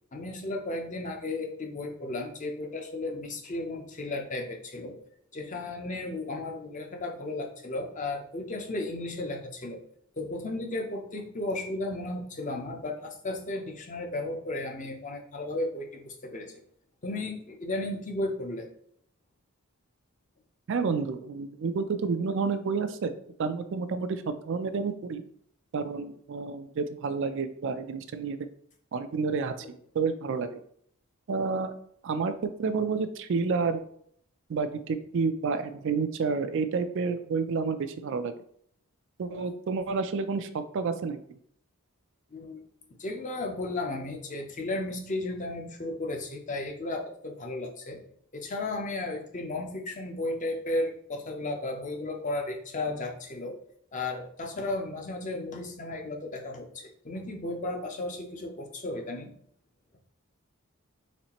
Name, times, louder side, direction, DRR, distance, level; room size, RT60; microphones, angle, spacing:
voice 1, 0.1-5.0 5.3-9.8 10.2-16.5 17.0-18.7 39.3-39.5 42.3-42.6 43.0-48.0 48.3-53.6 53.9-59.3, left 2 dB, 35° left, 2 dB, 0.6 m, -34 dB
voice 2, 20.7-23.1 23.4-25.2 25.7-28.4 28.9-30.6 31.3-31.7 32.0-33.8 34.5-38.3 39.2-41.4, right 4 dB, 55° right, 10 dB, 0.3 m, -30 dB
4.2 x 3.2 x 2.9 m, 0.65 s
head